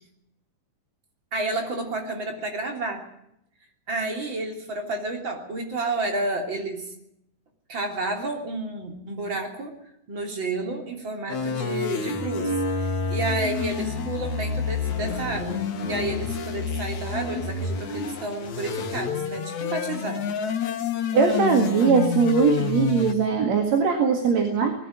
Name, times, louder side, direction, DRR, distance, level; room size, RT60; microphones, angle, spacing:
voice 1, 1.3-3.1 3.9-6.9 7.7-9.7 10.1-12.5 12.8-20.4, right 2 dB, 40° right, 3 dB, 3.8 m, -31 dB
sound 1, 11.3-23.1, left 5 dB, 65° left, 3.3 m, -28 dB
voice 2, 21.1-24.7, right 5 dB, 60° right, 4 dB, 3.1 m, -20 dB
20.0 x 14.0 x 9.8 m, 0.78 s
omnidirectional pair, 3.6 m